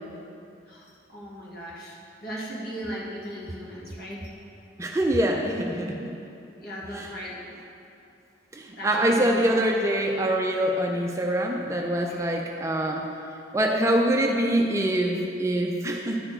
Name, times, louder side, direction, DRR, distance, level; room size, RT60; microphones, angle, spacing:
voice 1, 1.1-2.0 2.2-4.2 6.6-7.4 8.8-9.5 12.1-12.2, equal, 55° left, -5 dB, 1.7 m, -37 dB
voice 2, 4.8-6.1 6.9-7.1 8.5-13.1 13.5-16.2, right 1 dB, 15° right, 1 dB, 0.4 m, -24 dB
11.0 x 4.5 x 4.4 m, 2.7 s
head